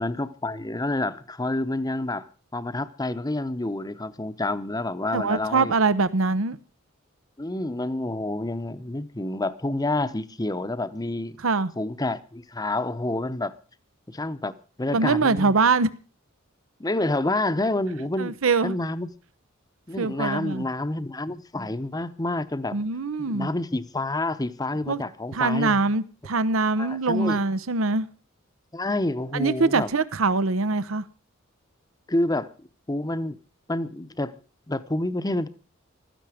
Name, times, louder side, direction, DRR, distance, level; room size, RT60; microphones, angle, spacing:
voice 1, 0.0-5.7 7.4-11.4 11.8-13.5 14.1-14.5 14.8-15.5 16.8-18.4 18.6-19.1 19.9-22.8 23.2-25.8 26.8-27.4 28.7-29.9 32.1-33.4 33.7-34.4 34.7-35.5, left 2 dB, 20° left, 0.8 m, -28 dB
voice 2, 5.1-6.6 11.4-11.7 14.9-15.9 18.2-18.8 20.0-20.7 22.7-23.5 24.9-25.0 25.3-28.1 29.3-31.0, right 3 dB, 70° right, 0.8 m, -23 dB
15.5 x 13.0 x 5.0 m
head